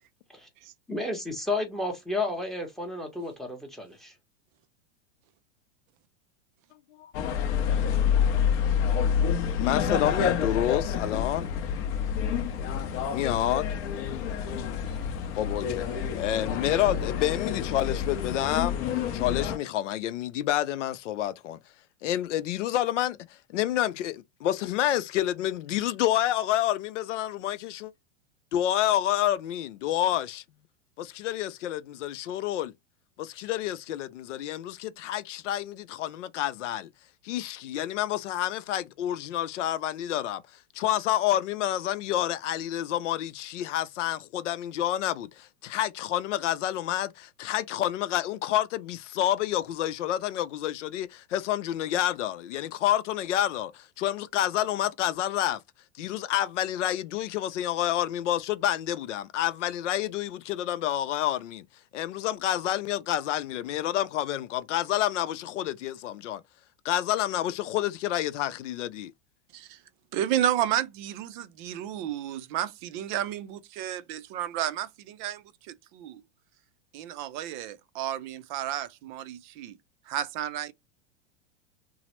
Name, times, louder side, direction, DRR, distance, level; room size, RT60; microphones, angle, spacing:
voice 1, 0.9-4.1, left 2 dB, ahead, 0.7 m, -32 dB
sound 1, 7.1-19.6, left 8 dB, 40° left, 0.6 m, -28 dB
voice 2, 9.5-11.5 13.1-13.7 15.4-15.9 16.1-18.8 19.1-21.6 22.0-23.2 23.5-27.9 28.5-30.4 31.0-32.7 33.2-36.9 37.2-40.4 40.7-55.6 56.0-61.6 61.9-66.4 66.8-69.1, left 12 dB, 85° left, 0.5 m, -28 dB
voice 3, 70.1-76.2 76.9-79.8 80.1-80.7, right 11 dB, 45° right, 0.4 m, -32 dB
3.0 x 2.0 x 2.9 m
supercardioid pair, 135°, 35 cm